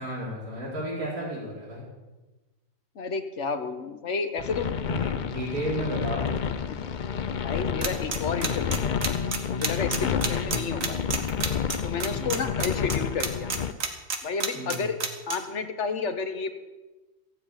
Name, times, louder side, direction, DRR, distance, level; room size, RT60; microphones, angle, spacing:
voice 1, 0.0-1.8 4.8-6.5 9.9-10.3 12.1-12.4 14.5-14.9, right 1 dB, 75° right, -6 dB, 5.4 m, -33 dB
voice 2, 2.9-4.7 6.7-6.8 7.4-9.0 9.5-11.2 11.8-13.5 14.2-15.0 15.3-16.5, left 5 dB, 50° left, 8 dB, 1.3 m, -31 dB
sound 1, 4.4-13.7, left 7 dB, 80° left, 0.4 m, -30 dB
sound 2, 7.8-15.4, right 5 dB, 60° right, 1.8 m, -28 dB
15.5 x 7.0 x 8.9 m, 1.2 s
omnidirectional pair, 1.7 m